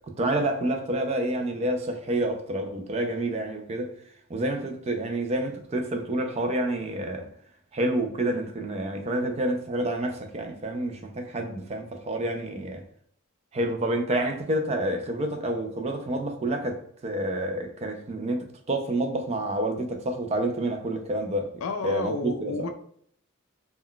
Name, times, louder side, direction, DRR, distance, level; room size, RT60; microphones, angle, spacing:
voice 1, 0.2-3.9 4.3-7.3 7.7-12.8 13.5-22.7, right 1 dB, 30° right, 0.4 m, -28 dB
voice 2, 21.6-22.7, left 3 dB, 75° left, 0.4 m, -31 dB
2.2 x 2.2 x 3.6 m
head